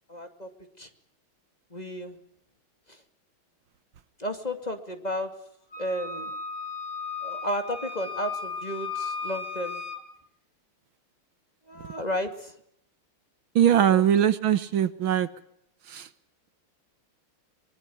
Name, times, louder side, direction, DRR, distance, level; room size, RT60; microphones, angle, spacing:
voice 1, 0.1-0.5 0.8-0.9 1.7-2.2 2.9-3.0 4.2-5.3 5.8-6.3 7.2-9.8 11.7-12.5 13.9-14.1, equal, 20° left, 6 dB, 2.4 m, -33 dB
Wind instrument woodwind instrument, 5.7-10.0, left 5 dB, 50° left, 3.3 m, -35 dB
voice 2, 13.6-15.3 15.9-16.1, right 10 dB, 70° right, 14 dB, 1.9 m, -21 dB
24.0 x 22.0 x 7.1 m, 0.72 s
omnidirectional pair, 2.3 m